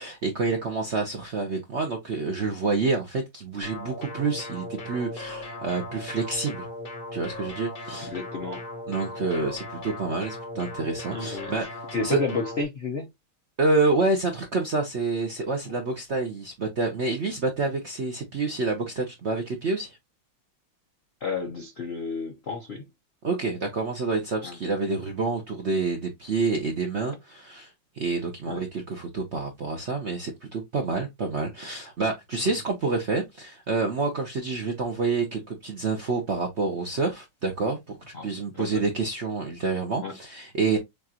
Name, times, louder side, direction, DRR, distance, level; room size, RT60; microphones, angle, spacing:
voice 1, 0.0-6.7 7.1-8.1 8.9-12.2 13.6-20.0 23.2-27.7 28.0-40.8, right 3 dB, 55° right, 0.7 m, -28 dB
sound 1, 3.6-12.6, left 2 dB, 40° left, 0.8 m, -38 dB
voice 2, 8.0-8.6 11.1-11.5 11.9-13.1 15.7-15.8 21.2-22.9 24.4-24.6 28.4-28.6 38.1-38.3 38.6-38.8 40.0-40.1, left 3 dB, 70° left, 0.6 m, -31 dB
6.8 x 2.5 x 2.8 m
omnidirectional pair, 2.2 m